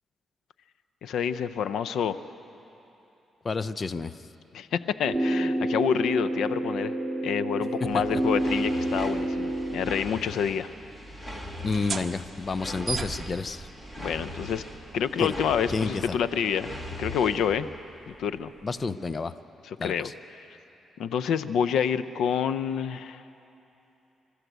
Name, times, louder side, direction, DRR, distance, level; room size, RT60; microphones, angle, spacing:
voice 1, 1.0-2.2 4.5-6.9 7.2-10.7 14.0-14.6 14.9-17.7 18.1-18.5 19.6-20.1 21.0-23.2, left 7 dB, 80° left, 12 dB, 0.6 m, -28 dB
voice 2, 3.4-4.1 8.1-8.2 11.6-13.7 15.2-15.4 15.7-16.2 18.6-19.3 19.8-20.1, left 4 dB, 30° left, 13 dB, 0.5 m, -30 dB
sound 1, 5.0-10.0, right 1 dB, ahead, 2.3 m, -28 dB
sound 2, 7.9-17.6, equal, 15° left, 1.9 m, -41 dB
sound 3, 11.6-18.8, right 5 dB, 30° right, 1.1 m, -41 dB
26.5 x 13.5 x 8.1 m, 3.0 s
cardioid pair, 125°, 0 cm